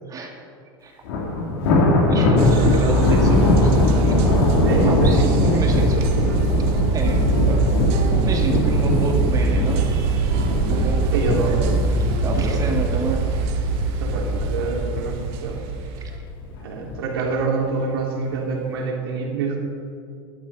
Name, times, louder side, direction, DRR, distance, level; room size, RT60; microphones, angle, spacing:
voice 1, 0.1-0.4 0.8-1.0 2.1-3.7 4.8-6.1 6.8-7.7 8.2-9.9 10.7-11.7 12.2-13.4, right 3 dB, 30° right, 1 dB, 2.2 m, -29 dB
Thunder, 1.0-14.3 14.7-15.0 15.4-15.5 16.4-17.0, left 2 dB, 80° left, 2.7 m, -21 dB
sound 1, 2.4-16.2, right 3 dB, 55° right, 1.6 m, -22 dB
voice 2, 2.4-2.8 4.6-6.4 11.1-11.7 12.4-12.7 14.0-15.6 16.6-19.6, right 4 dB, 90° right, -1 dB, 3.3 m, -27 dB
12.5 x 11.5 x 5.6 m, 2.4 s
supercardioid pair, 115°, 12 cm